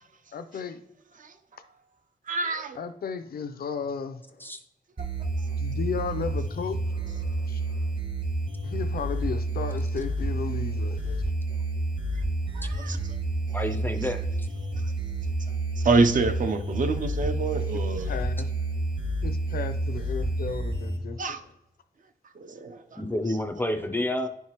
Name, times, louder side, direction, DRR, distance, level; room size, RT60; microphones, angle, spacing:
voice 1, 0.3-0.8 2.7-4.5 5.6-7.9 8.6-11.3 17.7-18.5 19.2-21.4, left 6 dB, 85° left, 0.5 m, -35 dB
voice 2, 2.3-2.8 5.2-5.3 12.5-13.0 15.8-18.1 21.2-21.4 22.4-23.0, right 3 dB, 60° right, 0.5 m, -26 dB
sound 1, 5.0-21.0, right 2 dB, 35° right, 0.9 m, -29 dB
voice 3, 13.5-14.5 23.0-24.3, left 1 dB, 15° left, 0.4 m, -29 dB
10.5 x 4.6 x 2.9 m
wide cardioid pair, 140°, 15 cm